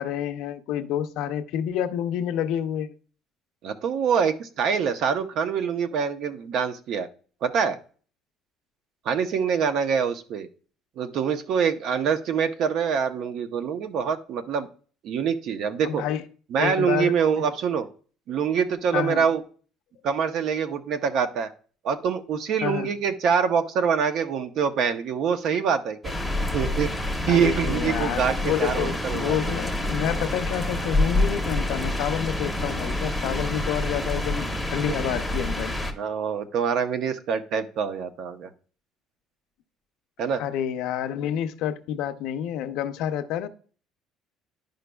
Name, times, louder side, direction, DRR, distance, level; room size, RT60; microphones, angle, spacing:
voice 1, 0.0-2.9 15.8-16.2 16.6-17.1 18.9-19.3 22.6-22.9 27.3-35.8 40.4-43.5, left 10 dB, 80° left, 0.6 m, -28 dB
voice 2, 3.6-7.1 7.4-7.8 9.0-10.5 11.0-14.7 15.0-16.0 16.5-17.9 18.3-19.4 20.0-21.5 21.8-26.1 26.5-26.9 27.3-29.6 36.0-38.5 40.2-40.4, right 7 dB, 60° right, 0.7 m, -25 dB
seat near the sea, 26.0-35.9, left 1 dB, 5° right, 0.9 m, -27 dB
11.0 x 5.1 x 2.3 m
cardioid pair, 130°, 0 cm